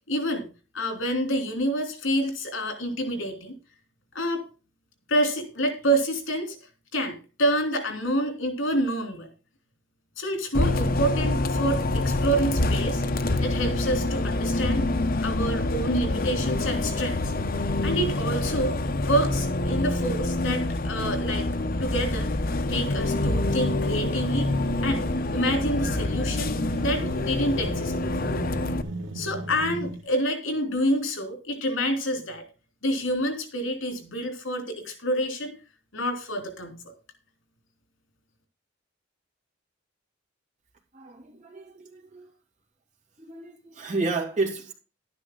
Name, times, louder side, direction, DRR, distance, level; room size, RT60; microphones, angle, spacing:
voice 1, 0.1-0.5 0.7-3.6 4.1-4.4 5.1-6.6 6.9-9.3 10.2-13.0 13.4-14.8 15.2-17.3 17.8-21.5 21.8-22.3 22.7-24.5 24.8-28.3 29.1-32.5 32.8-35.6 35.9-36.8, equal, 80° left, 3.6 m, -28 dB
Bus, 10.5-28.8, left 2 dB, 50° left, 0.9 m, -26 dB
sound 1, 23.2-30.0, right 2 dB, 70° right, 2.1 m, -37 dB
voice 2, 40.9-42.3 43.2-44.7, right 3 dB, 40° right, 2.8 m, -31 dB
12.0 x 9.7 x 4.0 m
head